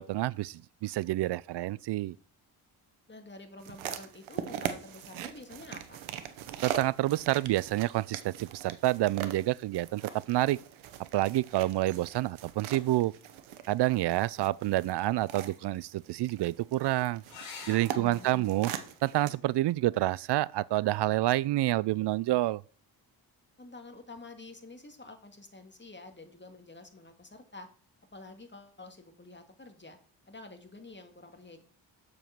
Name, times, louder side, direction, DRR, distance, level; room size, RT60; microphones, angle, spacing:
voice 1, 0.0-2.2 6.6-10.0 10.3-10.6 11.1-13.1 13.7-17.2 17.7-18.7 19.0-22.6, right 16 dB, 60° right, 0.5 m, -28 dB
voice 2, 3.1-6.0 17.9-18.7 23.6-27.7 28.1-30.0 30.3-31.6, left 2 dB, 25° left, 2.0 m, -49 dB
sound 1, 3.6-19.3, right 10 dB, 75° right, 0.9 m, -41 dB
sound 2, 17.3-22.3 24.2-24.8 28.3-28.4 28.7-28.8, left 5 dB, 80° left, 2.2 m, -52 dB
7.0 x 4.9 x 5.8 m
hypercardioid pair, 40°, 48 cm